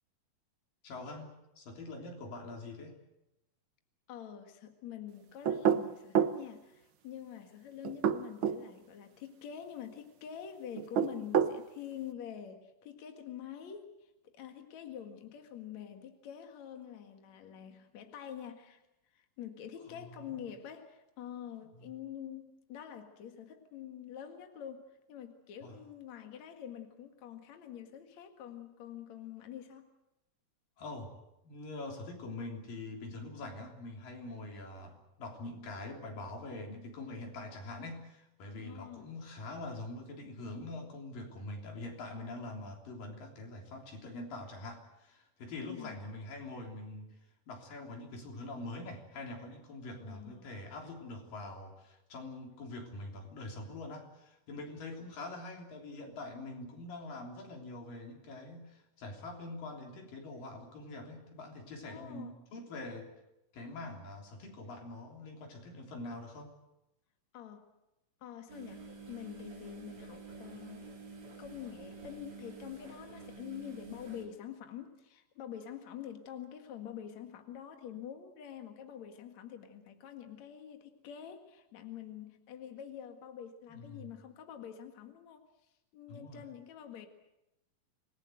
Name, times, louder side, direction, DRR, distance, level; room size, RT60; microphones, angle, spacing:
voice 1, 0.8-3.0 19.9-20.5 21.8-21.9 25.6-25.8 30.8-31.1 31.4-47.1 47.5-63.1 63.5-66.5 83.8-84.1 86.1-86.4, left 2 dB, 85° left, 2 dB, 5.2 m, -44 dB
voice 2, 4.1-18.8 19.1-29.9 38.6-39.1 45.6-46.0 50.0-50.5 61.8-62.4 67.3-67.7 68.2-70.9 71.4-85.5 85.9-87.1, left 9 dB, 60° left, 5 dB, 3.0 m, -46 dB
sound 1, 5.4-6.4 7.8-8.6 10.8-11.6, right 8 dB, 85° right, 1.1 m, -28 dB
sound 2, 68.5-74.2, right 4 dB, 40° right, 4.5 m, -49 dB
27.0 x 20.0 x 7.9 m, 0.91 s
omnidirectional pair, 3.8 m